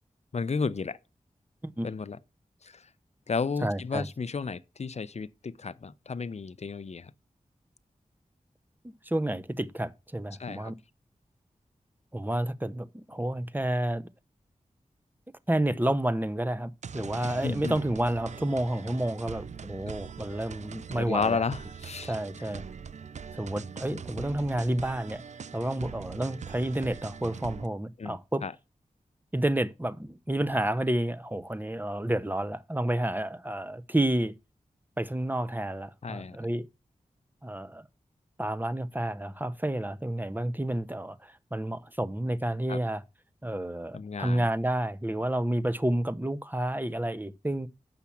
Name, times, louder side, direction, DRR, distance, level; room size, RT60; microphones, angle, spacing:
voice 1, 0.3-1.0 1.8-2.2 2.6-2.9 3.3-7.1 10.4-10.7 17.4-17.8 21.0-22.1 28.0-28.5 36.0-36.4 42.7-42.8 43.9-44.5, left 5 dB, 55° left, 0.6 m, -32 dB
voice 2, 3.6-4.1 8.8-10.7 12.1-14.1 15.5-21.4 22.1-22.6 23.3-25.2 25.5-28.4 29.3-34.4 35.0-36.7 37.4-37.8 38.4-43.0 43.4-47.7, right 1 dB, 15° right, 0.9 m, -30 dB
sound 1, 16.8-27.7, right 6 dB, 55° right, 0.4 m, -42 dB
7.3 x 5.8 x 7.1 m
cardioid pair, 45°, 14 cm